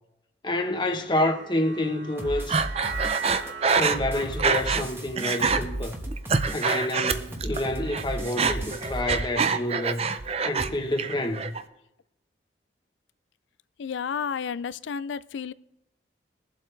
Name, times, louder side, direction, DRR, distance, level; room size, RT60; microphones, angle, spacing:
voice 1, 0.4-2.6 3.7-6.0 6.5-10.0 10.5-11.5, left 1 dB, 25° left, 1.1 m, -28 dB
sound 1, 0.9-7.3, right 5 dB, 80° right, 2.9 m, -41 dB
sound 2, 2.2-9.0, right 1 dB, 10° right, 1.1 m, -35 dB
Breathing, 2.5-4.9 5.2-5.6 6.1-7.6 7.9-10.7 11.0-11.6, right 5 dB, 30° right, 0.5 m, -25 dB
voice 2, 13.8-15.5, left 6 dB, 75° left, 0.4 m, -31 dB
22.0 x 7.7 x 3.3 m
head